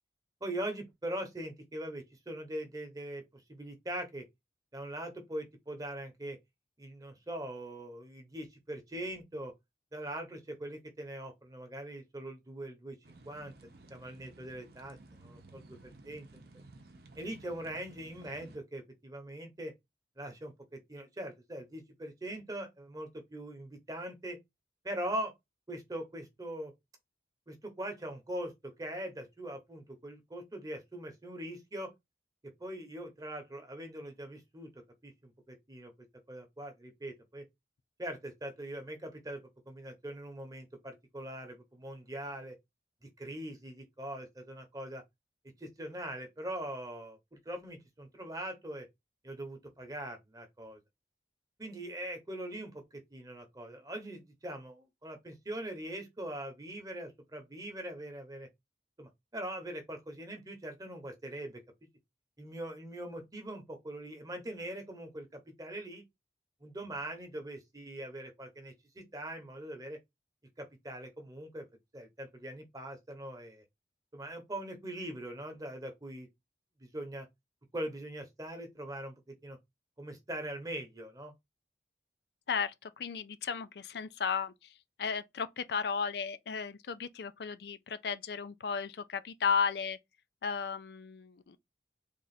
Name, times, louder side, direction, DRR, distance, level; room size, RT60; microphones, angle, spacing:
voice 1, 0.4-4.2 4.7-6.4 6.8-9.5 9.9-13.5 13.9-15.0 15.2-16.3 17.2-19.7 20.2-24.4 24.8-25.3 25.7-26.7 27.5-31.9 32.6-34.7 35.0-35.9 36.3-37.4 38.0-42.6 43.2-45.0 45.6-47.2 47.4-48.9 49.2-50.8 51.6-52.8 53.1-58.5 59.0-61.6 62.4-66.0 66.6-70.0 70.6-71.6 71.9-73.6 74.1-76.3 76.8-77.3 77.7-79.1 79.4-79.6 80.0-81.3, right 1 dB, 20° right, 1.0 m, -42 dB
sound 1, 13.0-18.6, right 2 dB, 60° right, 0.7 m, -55 dB
voice 2, 82.5-84.5 85.0-90.0 90.4-91.6, left 6 dB, 65° left, 0.4 m, -34 dB
3.6 x 2.5 x 4.1 m
head